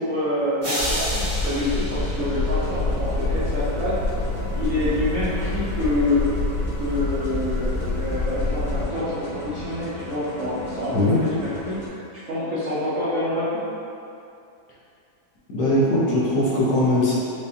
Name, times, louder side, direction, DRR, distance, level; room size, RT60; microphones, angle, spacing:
voice 1, 0.0-3.9 4.5-6.3 6.8-12.0 12.3-13.6, left 1 dB, 65° right, -9 dB, 0.8 m, -27 dB
sound 1, 0.6-2.9, equal, 30° right, 0.5 m, -30 dB
sound 2, 0.8-8.8, left 2 dB, 90° left, 1.3 m, -27 dB
sound 3, 1.9-11.9, left 1 dB, 35° left, 1.0 m, -36 dB
voice 2, 15.5-17.2, left 1 dB, 65° left, -8 dB, 1.2 m, -20 dB
4.9 x 2.2 x 2.7 m, 2.6 s
omnidirectional pair, 1.9 m